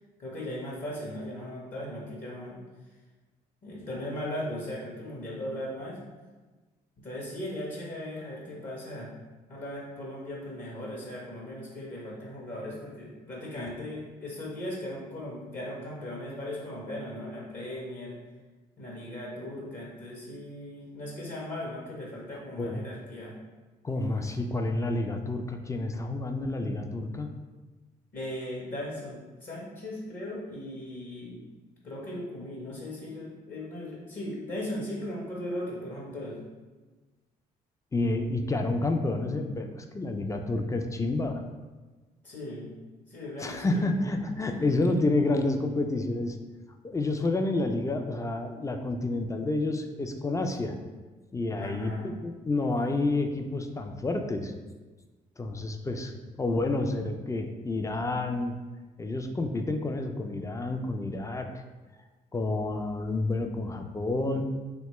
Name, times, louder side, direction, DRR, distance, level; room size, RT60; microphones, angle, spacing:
voice 1, 0.2-2.6 3.6-6.0 7.0-9.1 9.5-18.2 18.8-23.4 28.1-31.5 31.8-36.4 42.2-42.7 43.1-43.9 51.6-52.1, left 1 dB, 45° left, -5 dB, 0.8 m, -38 dB
voice 2, 23.8-27.3 37.9-41.4 43.4-46.4 46.8-50.7 51.3-54.5 55.4-58.6 59.0-61.5 62.3-64.4, left 2 dB, 15° left, 5 dB, 0.3 m, -29 dB
2.8 x 2.2 x 2.9 m, 1.3 s
hypercardioid pair, 50°, 19 cm